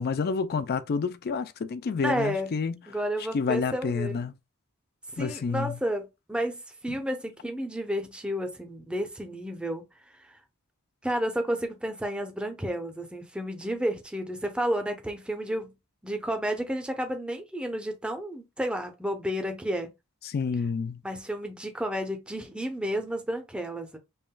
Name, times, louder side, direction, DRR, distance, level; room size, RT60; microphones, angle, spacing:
voice 1, 0.0-2.8 3.3-4.3 5.2-5.8 6.9-7.0 20.2-21.0, left 5 dB, 45° left, 0.4 m, -29 dB
voice 2, 2.0-2.5 2.9-4.3 5.2-9.8 11.0-15.7 16.0-19.9 21.0-24.0, equal, 5° right, 0.7 m, -31 dB
5.5 x 2.5 x 2.2 m
head